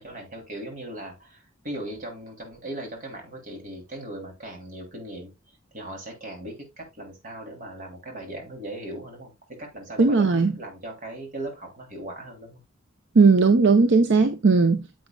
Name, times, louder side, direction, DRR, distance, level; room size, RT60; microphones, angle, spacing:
voice 1, 0.0-5.3 5.7-12.6, right 1 dB, 45° right, 3.1 m, -38 dB
voice 2, 10.0-10.5 13.2-14.8, right 4 dB, 65° right, 0.7 m, -17 dB
9.2 x 7.6 x 2.3 m
head